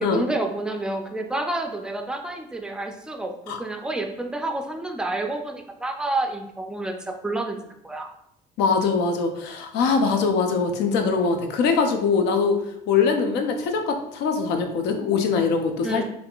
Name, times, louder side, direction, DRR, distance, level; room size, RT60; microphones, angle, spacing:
voice 1, 0.0-7.6 7.8-8.1 15.8-16.0, right 2 dB, 5° right, 3 dB, 0.3 m, -29 dB
voice 2, 8.6-12.6 12.9-16.0, left 5 dB, 85° left, 5 dB, 0.5 m, -22 dB
3.5 x 2.5 x 2.3 m, 0.77 s
cardioid pair, 110°, 17 cm